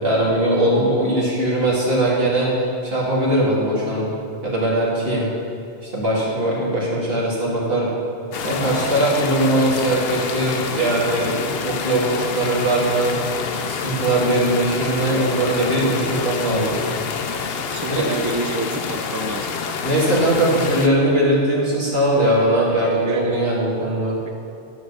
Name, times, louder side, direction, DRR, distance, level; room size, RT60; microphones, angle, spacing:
voice 1, 0.0-2.5 2.8-4.1 4.4-5.3 5.8-7.9 8.4-13.2 13.7-16.8 17.9-18.1 19.8-24.2, right 1 dB, 60° right, -6 dB, 2.4 m, -20 dB
sound 1, 8.3-20.9, left 5 dB, 65° left, 0.8 m, -27 dB
voice 2, 17.7-19.5 23.0-23.4 24.2-24.3, right 3 dB, 30° right, 5 dB, 0.3 m, -28 dB
11.0 x 4.7 x 6.8 m, 2.6 s
omnidirectional pair, 1.1 m